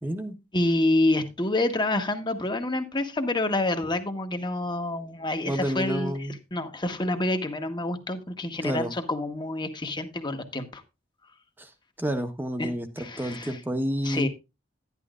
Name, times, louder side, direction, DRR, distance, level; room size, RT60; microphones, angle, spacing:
voice 1, 0.0-0.4 5.4-6.4 8.6-8.9 11.6-11.7 12.0-14.3, equal, 10° right, 6 dB, 1.1 m, -29 dB
voice 2, 0.5-6.1 6.5-10.8 12.6-12.7 13.0-13.6 14.0-14.3, left 2 dB, 25° left, 6 dB, 1.3 m, -27 dB
11.0 x 11.0 x 2.5 m, 0.26 s
head